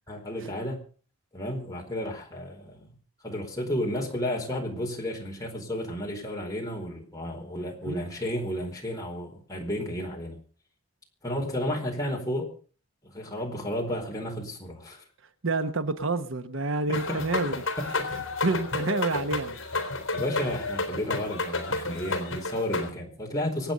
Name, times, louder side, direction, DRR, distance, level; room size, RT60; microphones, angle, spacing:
voice 1, 0.1-0.8 1.3-2.9 3.2-10.4 11.2-12.5 13.1-15.0 16.9-17.2 17.8-18.1 20.1-23.7, left 1 dB, 15° left, 0 dB, 4.5 m, -32 dB
voice 2, 15.4-17.7 18.1-19.6, right 3 dB, 60° right, 10 dB, 1.1 m, -29 dB
sound 1, 16.9-22.9, left 3 dB, 60° left, 3.7 m, -31 dB
25.5 x 9.0 x 5.3 m, 0.40 s
head